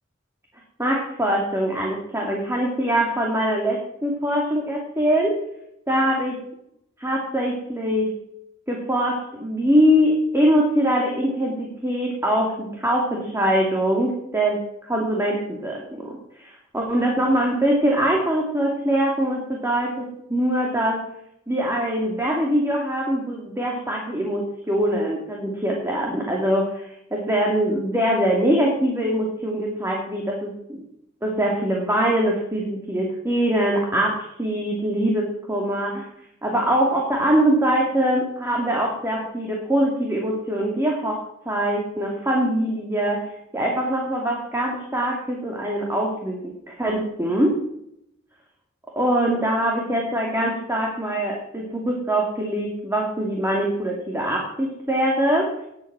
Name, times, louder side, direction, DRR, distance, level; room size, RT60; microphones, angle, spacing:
voice 1, 0.8-5.4 5.9-6.4 7.0-8.2 8.7-21.0 21.5-26.8 27.1-30.8 31.2-36.1 36.4-43.3 43.5-47.5 49.0-55.5, right 1 dB, 15° right, -1 dB, 2.5 m, -23 dB
19.5 x 8.4 x 6.1 m, 0.76 s
head